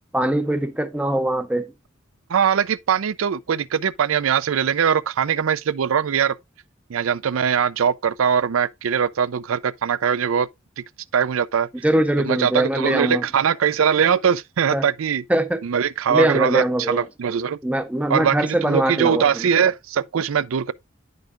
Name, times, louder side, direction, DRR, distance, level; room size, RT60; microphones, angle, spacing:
voice 1, 0.1-1.7 11.8-13.2 14.7-14.9 15.3-15.6 16.1-17.1 17.6-19.4, right 1 dB, 5° right, 0.4 m, -22 dB
voice 2, 2.3-6.4 6.9-10.5 11.1-11.7 12.2-15.2 15.6-17.6 18.1-20.7, right 7 dB, 85° right, 0.4 m, -21 dB
10.5 x 5.3 x 2.5 m
head